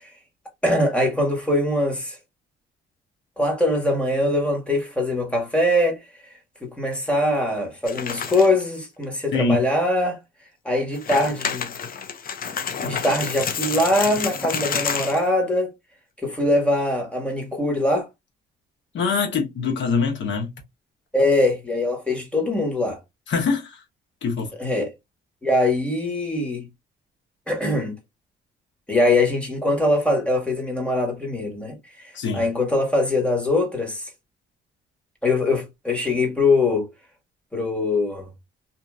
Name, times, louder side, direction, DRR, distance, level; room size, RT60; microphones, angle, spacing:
voice 1, 0.6-2.2 3.4-6.0 6.6-10.2 10.6-11.7 12.8-15.7 16.2-18.1 21.1-23.0 24.6-24.9 25.4-26.7 27.5-27.9 28.9-31.8 32.3-34.1 35.2-36.9 37.5-38.3, left 1 dB, 5° left, 1.4 m, -22 dB
sound 1, 7.9-8.6 9.0-9.1 9.7-9.8 10.8-15.3, left 6 dB, 45° left, 0.6 m, -29 dB
voice 2, 9.3-9.6 18.9-20.5 23.3-23.8 24.2-24.5 32.1-32.5, left 5 dB, 70° left, 1.1 m, -23 dB
2.8 x 2.6 x 2.3 m
cardioid pair, 90°, 20 cm